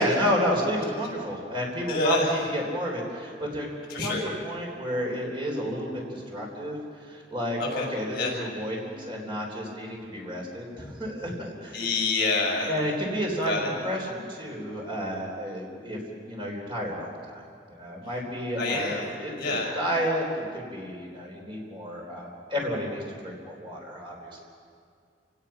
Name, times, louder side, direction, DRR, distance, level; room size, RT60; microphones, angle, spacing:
voice 1, 0.0-3.7 4.0-6.8 7.1-11.8 12.7-16.0 16.3-17.4 17.7-24.4, equal, 30° right, -1 dB, 3.8 m, -31 dB
voice 2, 1.9-2.3 3.9-4.2 7.6-7.9 8.1-8.3 11.7-12.7 13.4-13.7 18.6-19.1 19.4-19.7, left 3 dB, 55° left, -2 dB, 6.4 m, -27 dB
28.5 x 18.0 x 5.8 m, 2.2 s
head